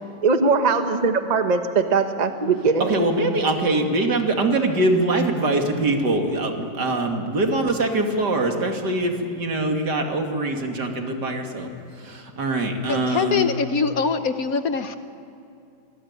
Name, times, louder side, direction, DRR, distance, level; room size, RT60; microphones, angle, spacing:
voice 1, 0.2-3.0, right 4 dB, 25° right, 7 dB, 1.1 m, -20 dB
voice 2, 2.9-11.7 12.0-13.4, right 2 dB, 65° right, 3 dB, 2.9 m, -23 dB
voice 3, 12.9-15.0, left 5 dB, 60° left, 9 dB, 1.3 m, -23 dB
26.5 x 19.0 x 9.7 m, 2.5 s
omnidirectional pair, 1.9 m